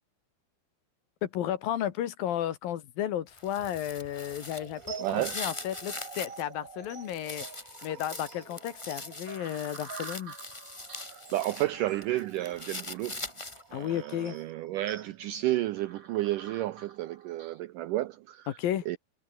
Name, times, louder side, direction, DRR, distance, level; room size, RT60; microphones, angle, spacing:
voice 1, 1.3-4.8 5.1-7.4 7.8-10.3 13.7-14.4 18.6-18.8, left 11 dB, 65° left, 3.2 m, -33 dB
sound 1, 3.3-6.4 6.8-11.7 12.0-13.8, left 2 dB, 20° left, 0.8 m, -42 dB
sound 2, 4.5-17.6, right 5 dB, 35° right, 1.3 m, -48 dB
voice 2, 5.0-5.4 11.0-13.3 13.7-18.6 18.9-19.0, right 15 dB, 90° right, 1.9 m, -32 dB
omnidirectional pair, 4.6 m